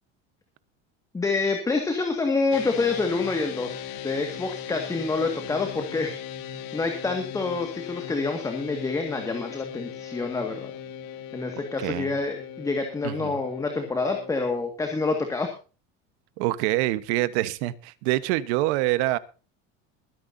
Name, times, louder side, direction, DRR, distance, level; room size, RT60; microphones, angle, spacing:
voice 1, 1.1-6.2 6.7-10.7 11.3-15.5, left 3 dB, 10° left, 4 dB, 1.9 m, -27 dB
sound 1, 2.5-14.7, left 9 dB, 65° left, 2.0 m, -38 dB
voice 2, 11.8-12.2 13.0-13.4 16.4-19.2, right 17 dB, 80° right, 15 dB, 1.3 m, -26 dB
22.5 x 10.5 x 2.7 m, 0.35 s
cardioid pair, 180°, 32 cm